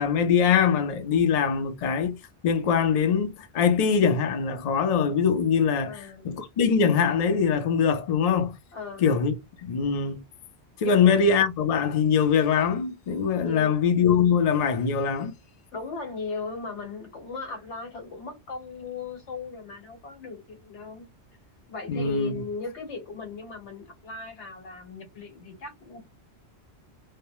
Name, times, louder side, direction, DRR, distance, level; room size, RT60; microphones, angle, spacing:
voice 1, 0.0-2.2 2.4-8.6 9.0-9.3 9.6-10.2 10.8-15.3 21.9-22.3, left 6 dB, 50° left, 0.5 m, -23 dB
voice 2, 5.8-6.3 8.7-9.0 10.8-11.3 13.4-13.8 15.7-21.1 21.7-26.0, left 4 dB, 85° left, 1.2 m, -37 dB
2.1 x 2.1 x 2.9 m
omnidirectional pair, 1.1 m